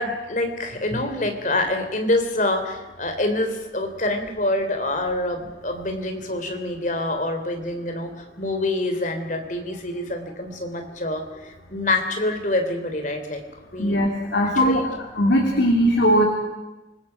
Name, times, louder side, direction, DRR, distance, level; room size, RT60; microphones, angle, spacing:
voice 1, 0.0-13.4 13.7-14.0 14.4-14.9, left 2 dB, 45° left, 6 dB, 3.4 m, -26 dB
voice 2, 13.8-14.8 15.2-16.2, equal, 80° left, 0 dB, 3.6 m, -19 dB
28.5 x 20.5 x 6.0 m, 1.0 s
head